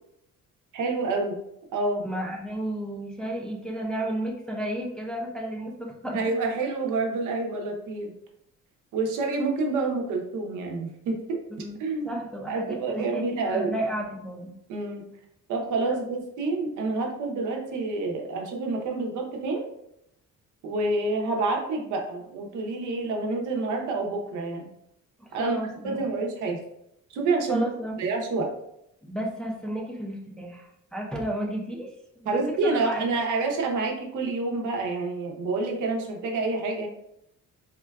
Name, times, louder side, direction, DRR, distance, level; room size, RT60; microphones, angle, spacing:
voice 1, 0.7-1.4 1.7-2.1 6.1-8.1 8.9-11.4 11.8-12.2 12.5-13.7 14.7-15.1 15.5-19.6 20.6-24.7 25.3-25.6 25.8-26.6 27.1-27.7 28.0-28.5 32.3-36.9, right 3 dB, 90° right, 1 dB, 0.7 m, -28 dB
voice 2, 2.0-6.2 11.6-14.5 15.9-16.0 25.2-26.1 27.5-28.0 29.0-31.9 32.2-33.2, right 1 dB, 5° left, -1 dB, 0.4 m, -33 dB
3.6 x 2.2 x 2.3 m, 0.78 s
cardioid pair, 140°, 30 cm